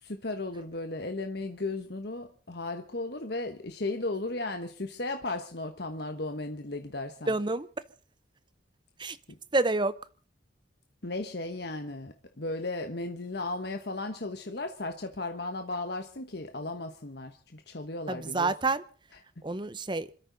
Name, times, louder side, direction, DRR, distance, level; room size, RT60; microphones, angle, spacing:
voice 1, 0.0-7.3 11.0-18.5, left 2 dB, 55° left, 1.3 m, -35 dB
voice 2, 7.3-7.7 9.0-9.2 9.5-10.0 18.1-18.8 19.4-20.1, right 2 dB, 25° right, 0.8 m, -28 dB
26.5 x 13.5 x 4.0 m
head